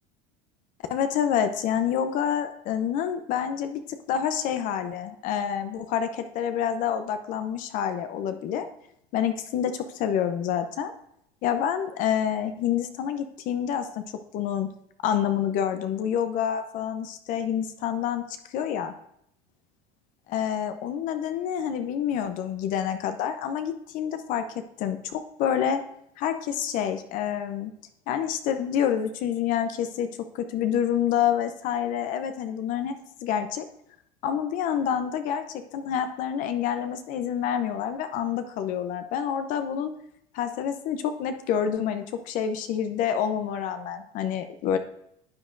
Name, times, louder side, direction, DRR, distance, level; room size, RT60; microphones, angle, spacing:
voice 1, 0.9-3.8 4.1-8.7 9.1-10.9 11.4-14.0 14.3-14.7 15.0-18.2 18.5-18.9 20.3-24.5 24.8-25.8 26.2-27.7 28.1-30.1 30.3-32.9 33.2-33.6 34.2-39.9 40.3-44.8, left 9 dB, 55° left, 9 dB, 0.8 m, -27 dB
11.5 x 8.0 x 2.6 m, 0.73 s
supercardioid pair, 110°, 16 cm